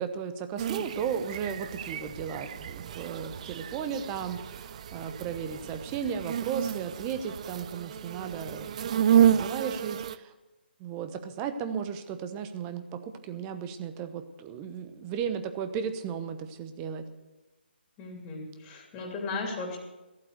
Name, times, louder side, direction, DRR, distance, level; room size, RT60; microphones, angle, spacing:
voice 1, 0.0-10.3 10.8-17.1, right 7 dB, 20° right, 9 dB, 1.0 m, -35 dB
sound 1, 0.6-10.2, right 9 dB, 35° right, 0.4 m, -30 dB
voice 2, 18.0-19.8, left 3 dB, 20° left, 0 dB, 3.0 m, -36 dB
15.0 x 8.4 x 7.9 m, 1.1 s
figure-of-eight pair, 150°, 6 cm